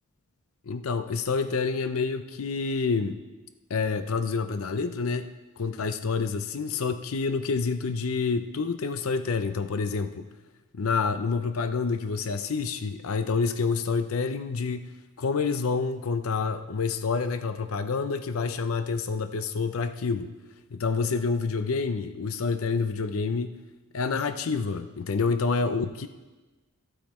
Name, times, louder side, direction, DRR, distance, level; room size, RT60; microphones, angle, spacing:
voice 1, 0.7-3.2 3.7-10.3 10.7-14.9 15.2-20.3 20.7-23.6 23.9-26.1, left 4 dB, 90° left, 10 dB, 0.6 m, -28 dB
12.5 x 8.7 x 4.3 m, 1.2 s
head